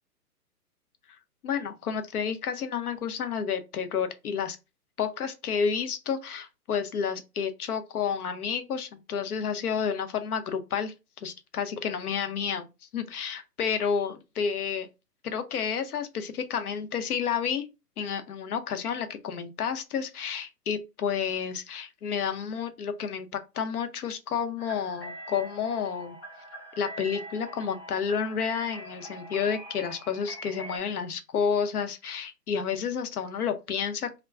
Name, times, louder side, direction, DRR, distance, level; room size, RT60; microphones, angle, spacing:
voice 1, 1.4-4.6 5.0-10.9 11.2-14.9 15.2-17.7 18.0-26.2 26.8-34.1, left 7 dB, 65° left, 0.7 m, -30 dB
sound 1, 24.6-30.8, right 1 dB, 20° left, 0.7 m, -43 dB
2.3 x 2.1 x 3.4 m
hypercardioid pair, 145°, 48 cm